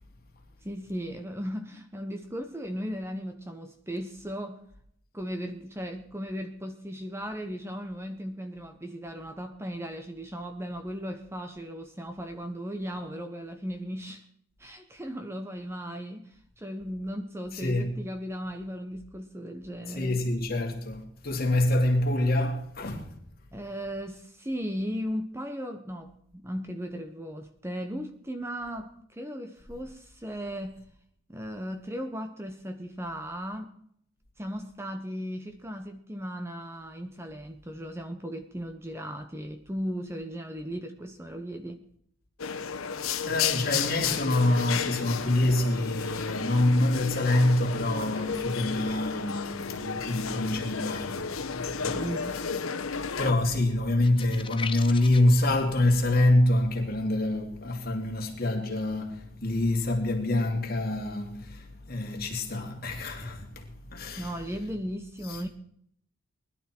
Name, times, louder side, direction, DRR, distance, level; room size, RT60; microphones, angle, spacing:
voice 1, 0.6-4.6 5.1-14.3 14.6-20.2 23.5-30.8 31.3-33.7 34.4-41.8 51.9-52.4 64.2-65.5, equal, 10° right, 0.9 m, -36 dB
voice 2, 17.5-17.9 19.9-23.2 43.3-52.0 53.2-64.3 65.3-65.4, left 1 dB, 45° left, 2.8 m, -26 dB
sound 1, 42.4-53.3, left 6 dB, 85° left, 1.1 m, -32 dB
sound 2, 54.0-55.4, left 5 dB, 25° left, 0.7 m, -38 dB
20.5 x 12.0 x 4.5 m
head